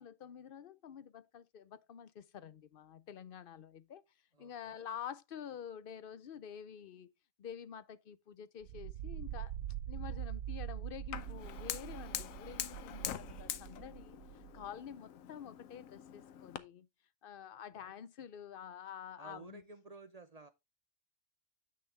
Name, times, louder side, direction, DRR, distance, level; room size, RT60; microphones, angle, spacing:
voice 1, 0.0-4.0 4.4-7.1 7.4-9.5 9.9-16.9 17.2-19.6, left 8 dB, 55° left, 0.6 m, -48 dB
voice 2, 4.3-4.9 17.7-17.9 19.2-20.5, right 3 dB, 40° right, 0.6 m, -54 dB
sound 1, 8.6-14.7, right 12 dB, 85° right, 1.0 m, -44 dB
Fire, 11.1-16.6, left 10 dB, 85° left, 1.1 m, -44 dB
8.5 x 6.2 x 3.3 m
omnidirectional pair, 1.4 m